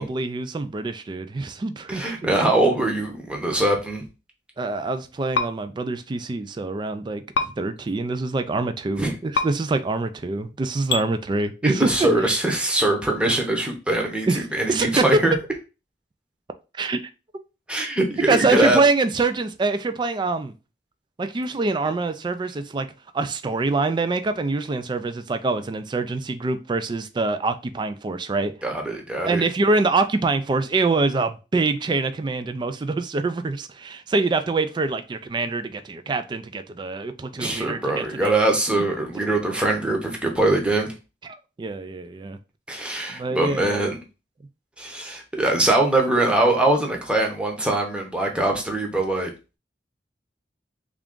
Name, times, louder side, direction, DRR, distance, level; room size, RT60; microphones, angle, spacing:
voice 1, 0.0-2.1 4.6-12.1 14.3-15.1 16.8-17.0 18.3-20.5 21.2-22.9 23.1-28.5 29.3-38.3 41.2-42.4 43.1-43.8, right 3 dB, 25° right, 0.3 m, -25 dB
voice 2, 1.9-4.0 9.0-9.1 11.6-15.3 17.7-18.8 28.6-29.4 37.4-40.9 42.7-44.0 44.8-49.3, right 2 dB, 5° right, 0.8 m, -22 dB
sound 1, 5.3-5.5 7.3-7.5 9.3-9.5 10.9-11.0, left 4 dB, 80° left, 0.4 m, -22 dB
3.5 x 2.5 x 3.6 m
head